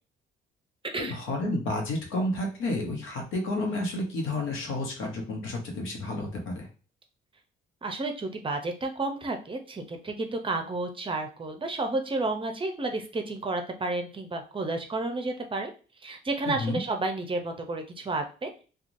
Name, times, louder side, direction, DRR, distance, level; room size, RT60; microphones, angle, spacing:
voice 1, 1.0-6.7 16.5-16.8, left 2 dB, 85° left, 2 dB, 0.9 m, -31 dB
voice 2, 7.8-15.7 16.0-18.5, right 2 dB, 25° right, 5 dB, 0.6 m, -31 dB
3.0 x 2.3 x 2.5 m, 0.36 s
cardioid pair, 90°, 20 cm